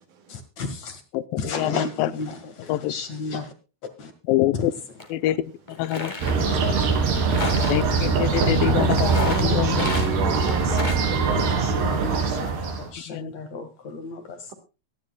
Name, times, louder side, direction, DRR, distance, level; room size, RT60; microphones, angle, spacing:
voice 1, 0.3-1.0 1.4-3.5 4.0-4.1 4.5-4.7 6.3-6.6 9.6-10.0 11.7-12.4 12.6-14.4, left 3 dB, 50° left, 2.6 m, -34 dB
voice 2, 1.1-2.1 2.7-2.9 4.3-4.7 5.1-5.4 5.8-6.1 6.4-6.6 7.6-9.9 12.3-12.5 13.1-13.3, left 14 dB, 75° left, 2.3 m, -25 dB
sound 1, 5.0-5.1 5.7-6.4 7.1-7.8 9.0-10.1 10.4-11.1, left 3 dB, 20° left, 1.3 m, -31 dB
sound 2, 6.2-12.9, right 4 dB, 85° right, 4.9 m, -22 dB
voice 3, 8.7-11.8 12.1-12.4, right 6 dB, 55° right, 3.4 m, -32 dB
23.0 x 10.5 x 2.3 m
omnidirectional pair, 4.5 m